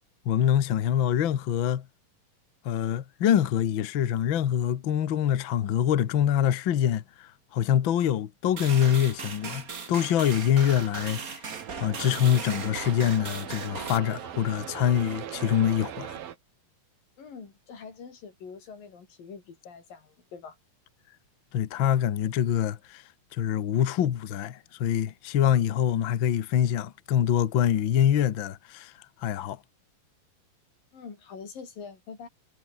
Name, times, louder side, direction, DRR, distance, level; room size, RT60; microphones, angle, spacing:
voice 1, 0.2-1.9 2.6-11.4 11.8-16.1 21.5-23.0 23.3-28.9 29.2-29.6, left 10 dB, 60° left, 1.3 m, -25 dB
sound 1, 8.6-14.0, right 5 dB, 30° right, 1.8 m, -38 dB
sound 2, 11.5-16.4, right 10 dB, 85° right, 3.7 m, -40 dB
voice 2, 17.2-20.6 30.9-32.3, left 5 dB, 80° left, 6.4 m, -44 dB
omnidirectional pair, 3.9 m